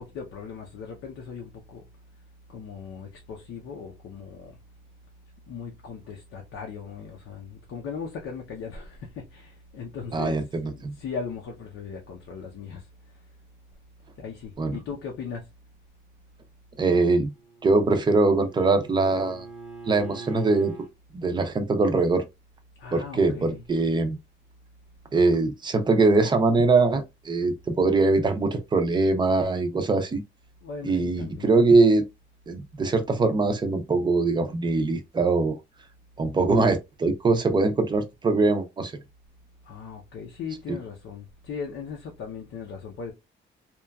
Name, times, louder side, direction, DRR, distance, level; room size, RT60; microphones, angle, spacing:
voice 1, 0.0-1.9 2.5-4.6 5.5-10.4 10.7-12.9 14.2-15.5 22.8-23.6 30.6-31.5 39.7-43.1, left 6 dB, 85° left, 0.6 m, -38 dB
voice 2, 10.1-10.9 14.6-14.8 16.8-17.3 17.6-19.5 19.9-20.7 21.1-22.2 22.9-24.2 25.1-30.2 30.8-32.0 32.5-35.5 36.2-38.9 40.7-40.8, right 3 dB, 20° right, 0.4 m, -22 dB
Bowed string instrument, 17.1-20.9, right 3 dB, 5° right, 0.9 m, -43 dB
2.9 x 2.3 x 2.2 m
wide cardioid pair, 165°, 20 cm